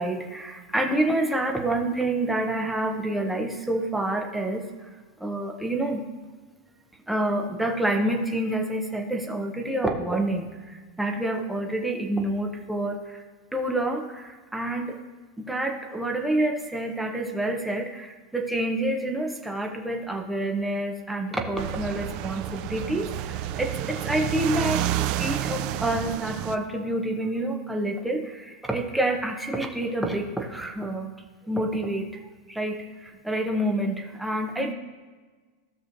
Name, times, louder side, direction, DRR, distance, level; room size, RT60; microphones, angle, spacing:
voice 1, 0.0-4.9 5.2-6.0 7.1-13.2 13.5-15.0 15.4-31.1 31.4-32.2 32.5-34.7, right 1 dB, 5° right, 2 dB, 0.7 m, -28 dB
sound 1, 21.6-26.6, right 12 dB, 35° right, 0.4 m, -29 dB
16.0 x 6.1 x 2.6 m, 1.4 s
supercardioid pair, 175°, 3 cm